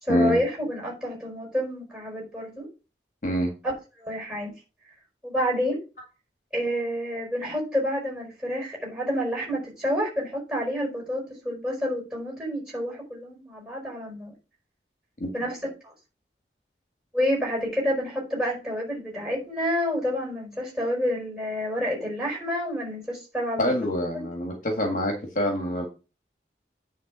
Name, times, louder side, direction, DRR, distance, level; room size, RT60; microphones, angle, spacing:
voice 1, 0.0-2.7 3.6-3.7 4.0-4.5 5.2-5.8 6.5-14.3 15.3-15.6 15.8-15.9 17.1-23.6, equal, 5° right, -1 dB, 4.7 m, -29 dB
voice 2, 23.6-25.9, equal, 45° left, 2 dB, 1.7 m, -25 dB
9.5 x 3.7 x 6.2 m, 0.32 s
head